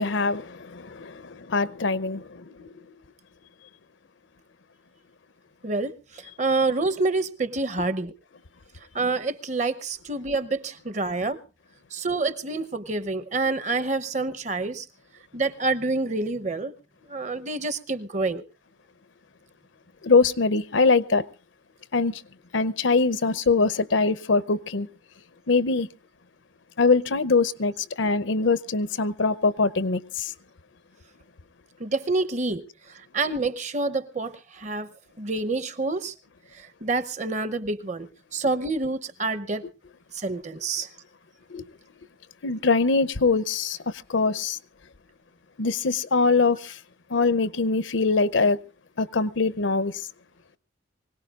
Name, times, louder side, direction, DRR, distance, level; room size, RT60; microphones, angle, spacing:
voice 1, 0.0-2.5 20.0-21.2 21.9-22.2 22.5-24.9 25.5-25.9 26.8-30.3 41.5-41.6 42.4-43.8 44.1-44.6 45.6-46.8 47.1-48.6 49.0-50.1, left 4 dB, 75° left, 0.7 m, -23 dB
voice 2, 5.6-8.1 8.9-11.4 11.9-14.9 15.3-16.7 17.1-18.4 31.8-34.9 35.2-36.1 36.5-39.6 40.1-40.9, right 3 dB, 35° right, 0.8 m, -27 dB
24.5 x 18.0 x 2.4 m
head